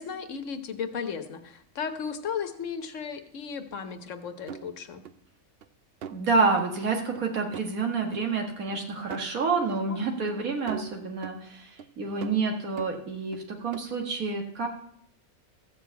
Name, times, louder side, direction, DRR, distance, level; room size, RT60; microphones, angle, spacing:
voice 1, 0.0-5.0 9.9-10.1 10.9-11.0, left 6 dB, 65° left, 8 dB, 1.3 m, -35 dB
sound 1, 4.5-5.1 5.6-5.7 6.0-6.3 6.6-6.7 7.1-7.2 7.5-7.7 8.1-8.2 8.7-8.8 9.1-9.3 9.7-9.8 10.3-10.4 10.7-11.4 11.8-11.9 12.2-13.4 13.7-13.8, right 7 dB, 60° right, 0.7 m, -42 dB
voice 2, 6.1-14.7, right 4 dB, 85° right, 2 dB, 2.1 m, -28 dB
14.0 x 4.8 x 8.1 m, 0.69 s
omnidirectional pair, 1.4 m